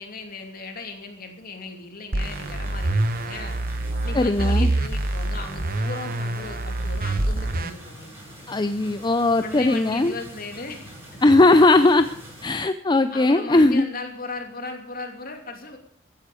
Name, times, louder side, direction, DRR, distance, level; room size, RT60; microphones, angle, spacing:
voice 1, 0.0-3.5 4.0-8.3 9.4-10.9 13.1-15.8, left 3 dB, 50° left, 4 dB, 2.9 m, -36 dB
sound 1, 2.1-7.7, right 2 dB, 50° right, 1.0 m, -25 dB
sound 2, 2.2-12.5, equal, 15° right, 7.7 m, -44 dB
voice 2, 4.1-4.7 8.5-10.1 11.2-12.1 12.4-13.9, left 2 dB, 25° left, 10 dB, 0.5 m, -18 dB
15.0 x 10.0 x 6.9 m, 0.63 s
head